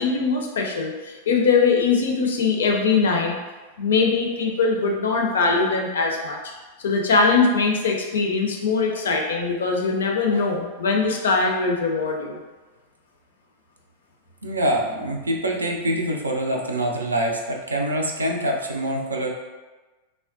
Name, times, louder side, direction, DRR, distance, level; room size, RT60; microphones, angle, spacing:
voice 1, 0.0-3.3 3.8-6.4 6.8-12.4, left 4 dB, 65° left, 1 dB, 0.4 m, -21 dB
voice 2, 14.4-19.3, right 1 dB, 80° right, 1 dB, 0.4 m, -25 dB
3.5 x 2.1 x 2.5 m, 1.2 s
figure-of-eight pair, 90°, 0 cm